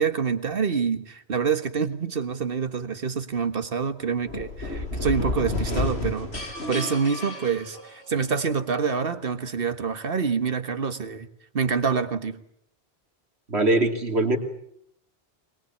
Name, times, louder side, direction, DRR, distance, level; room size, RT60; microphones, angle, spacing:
voice 1, 0.0-11.3 11.5-12.4, right 6 dB, 60° right, 10 dB, 1.6 m, -26 dB
sound 1, 4.2-8.3, left 2 dB, 80° left, 5.2 m, -30 dB
voice 2, 13.5-14.4, right 2 dB, 85° right, 4 dB, 3.3 m, -22 dB
22.0 x 21.5 x 8.6 m, 0.71 s
omnidirectional pair, 1.1 m